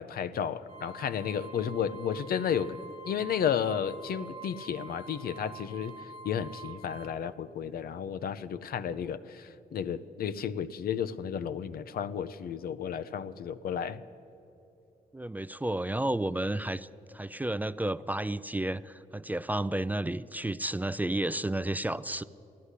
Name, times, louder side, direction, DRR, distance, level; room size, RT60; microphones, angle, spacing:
voice 1, 0.0-2.8 3.1-5.9 6.2-14.0, left 8 dB, 75° left, 13 dB, 0.6 m, -32 dB
sound 1, 0.7-7.1, right 4 dB, 45° right, 1.3 m, -47 dB
voice 2, 15.1-22.2, right 1 dB, 10° right, 15 dB, 0.3 m, -32 dB
15.0 x 11.5 x 8.2 m, 2.9 s
cardioid pair, 85°, 16 cm